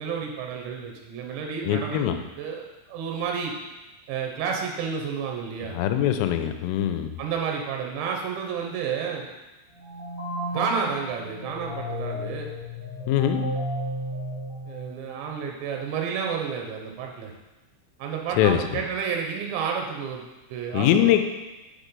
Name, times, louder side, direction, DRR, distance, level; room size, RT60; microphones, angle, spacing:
voice 1, 0.0-2.1 2.4-3.5 4.1-5.8 7.2-9.3 10.5-12.5 14.7-17.3 18.0-21.2, right 6 dB, 75° right, 1 dB, 2.8 m, -31 dB
voice 2, 1.6-2.2 5.7-7.2 13.1-13.4 18.4-18.6 20.7-21.2, left 11 dB, 85° left, 7 dB, 3.0 m, -22 dB
sound 1, 9.7-15.2, equal, 50° right, 0.9 m, -33 dB
7.3 x 4.3 x 5.2 m, 1.1 s
omnidirectional pair, 5.7 m